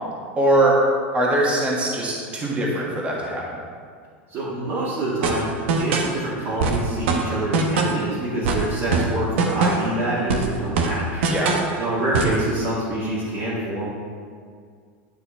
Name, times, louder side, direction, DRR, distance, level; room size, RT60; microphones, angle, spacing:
voice 1, 0.4-0.8 1.1-3.6 11.3-11.6, right 1 dB, 20° right, -4 dB, 1.5 m, -21 dB
voice 2, 4.3-5.4 5.8-11.2 11.8-13.9, right 1 dB, 45° right, -9 dB, 1.8 m, -26 dB
sound 1, 5.2-6.2 6.6-8.1 8.4-10.0 10.3-11.7 12.1-12.4, right 4 dB, 80° right, 0.9 m, -22 dB
9.5 x 4.4 x 4.3 m, 2.1 s
supercardioid pair, 135°, 6 cm